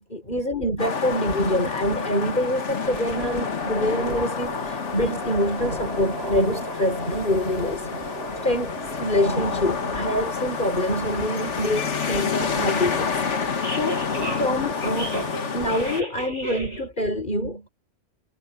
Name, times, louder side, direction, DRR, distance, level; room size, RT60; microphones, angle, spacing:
voice 1, 0.1-7.9 8.4-13.1 13.8-14.1 14.4-17.7, equal, 40° left, 6.2 m, -26 dB
sound 1, 0.8-16.0, left 5 dB, 75° left, 1.7 m, -29 dB
sound 2, 2.8-16.9, right 1 dB, 60° right, 8.0 m, -35 dB
omnidirectional pair, 1.2 m